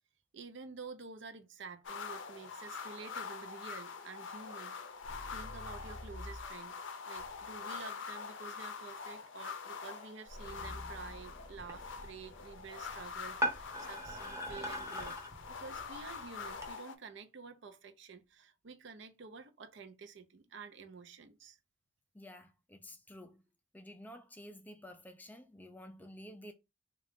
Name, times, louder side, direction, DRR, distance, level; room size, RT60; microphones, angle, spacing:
voice 1, 0.3-4.7 5.3-15.2 15.5-21.6, right 4 dB, 65° right, 0.6 m, -50 dB
sound 1, 1.8-17.0, left 5 dB, 65° left, 0.5 m, -45 dB
sound 2, 3.7-6.7 7.2-7.7 10.3-14.4, left 1 dB, 45° right, 1.1 m, -52 dB
sound 3, 11.6-16.7, equal, 15° right, 0.8 m, -41 dB
voice 2, 22.1-23.4 23.7-26.5, left 1 dB, 10° left, 0.3 m, -51 dB
3.6 x 2.4 x 3.5 m
head